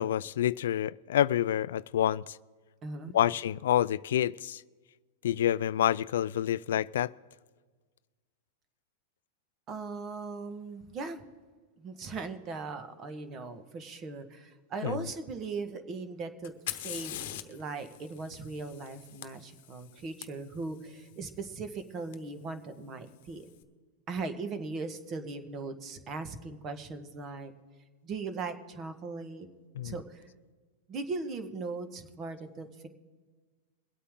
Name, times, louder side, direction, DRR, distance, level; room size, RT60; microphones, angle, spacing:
voice 1, 0.0-2.4 3.1-4.6 5.2-7.1 14.8-15.1 29.8-29.9, left 11 dB, 80° left, 0.3 m, -28 dB
voice 2, 2.8-3.2 9.7-11.2 11.8-16.5 16.8-23.5 24.1-27.5 28.0-29.5 29.8-30.3 30.9-32.9, right 4 dB, 30° right, 1.4 m, -39 dB
Fire, 16.4-20.2 22.1-22.2 23.1-23.5, left 13 dB, 60° left, 1.0 m, -42 dB
23.0 x 8.5 x 3.7 m
supercardioid pair, 135°, 0 cm